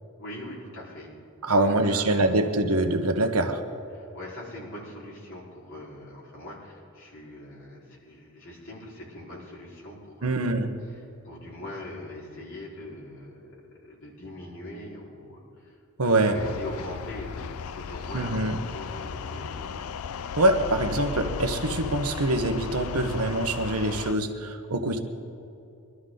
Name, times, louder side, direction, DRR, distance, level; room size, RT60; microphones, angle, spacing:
voice 1, 0.2-1.1 1.5-2.4 3.9-10.5 10.9-19.9, left 1 dB, 60° left, -6 dB, 4.6 m, -42 dB
voice 2, 1.4-3.6 10.2-10.7 16.0-16.3 18.1-18.6 20.4-25.0, right 2 dB, 85° right, 6 dB, 1.2 m, -24 dB
sound 1, 16.3-24.1, left 6 dB, 80° left, 0.4 m, -36 dB
22.5 x 13.0 x 3.9 m, 2.8 s
head